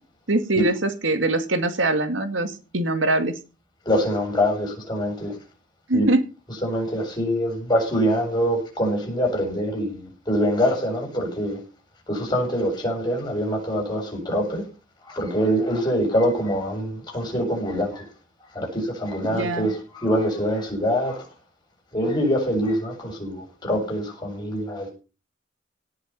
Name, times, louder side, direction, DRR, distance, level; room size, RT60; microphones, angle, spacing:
voice 1, 0.3-3.3 5.9-6.2 19.2-19.7, right 2 dB, 80° right, 8 dB, 2.1 m, -23 dB
voice 2, 3.9-5.3 5.9-6.1 6.6-11.6 12.1-14.6 15.1-18.1 18.5-21.2 21.9-24.9, equal, 20° left, 1 dB, 7.5 m, -24 dB
17.5 x 7.0 x 5.9 m, 0.33 s
head